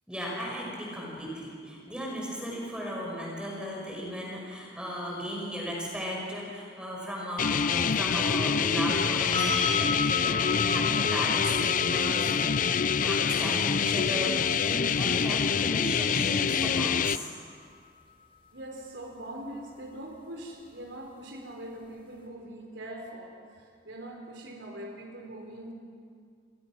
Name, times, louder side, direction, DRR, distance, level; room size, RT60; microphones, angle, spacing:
voice 1, 0.1-17.3, equal, 5° right, -3 dB, 5.5 m, -35 dB
sound 1, 7.4-17.2, left 7 dB, 45° left, 0.5 m, -26 dB
sound 2, 9.3-17.1 20.0-20.1, left 5 dB, 30° left, 4.5 m, -35 dB
voice 2, 18.5-25.7, right 1 dB, 90° right, 2 dB, 4.1 m, -42 dB
29.5 x 22.0 x 6.1 m, 2.1 s
head